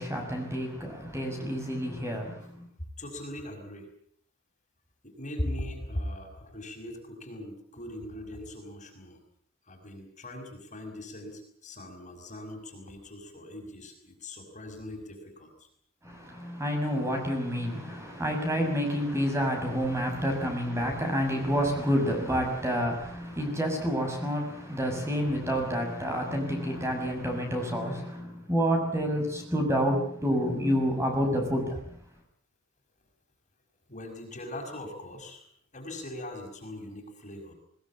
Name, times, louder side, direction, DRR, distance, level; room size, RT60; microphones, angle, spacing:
voice 1, 0.0-2.4 16.0-31.8, equal, 15° right, 2 dB, 6.7 m, -29 dB
voice 2, 3.0-3.9 5.0-9.2 9.7-15.5 20.2-20.3 26.6-27.0 33.9-35.4 35.7-37.5, left 1 dB, 35° left, 3 dB, 5.7 m, -40 dB
21.0 x 20.5 x 8.7 m, 0.62 s
head